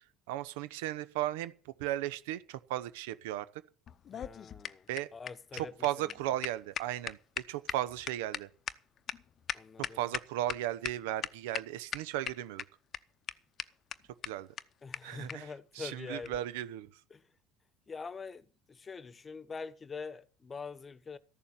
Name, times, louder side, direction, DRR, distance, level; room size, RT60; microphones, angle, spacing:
voice 1, 0.3-1.5 1.8-3.4 4.9-5.1 5.5-7.2 7.5-8.5 10.0-12.6 14.2-14.5 15.0-15.4 15.8-16.9, right 14 dB, 80° right, 0.9 m, -35 dB
sound 1, 3.9-10.6 10.8-10.9 11.2-11.6 11.9-12.6 12.9-13.0 13.3-13.4 13.6-13.7 13.9-14.0 14.2-14.3 14.6-14.7 14.9-15.0 15.3-15.4 16.2-16.4, left 9 dB, 45° left, 0.7 m, -37 dB
voice 2, 4.1-6.1 9.5-10.1 14.8-16.4 17.1-17.3 17.9-21.2, left 5 dB, 25° left, 1.1 m, -45 dB
14.5 x 7.0 x 9.3 m
supercardioid pair, 85°, 0 cm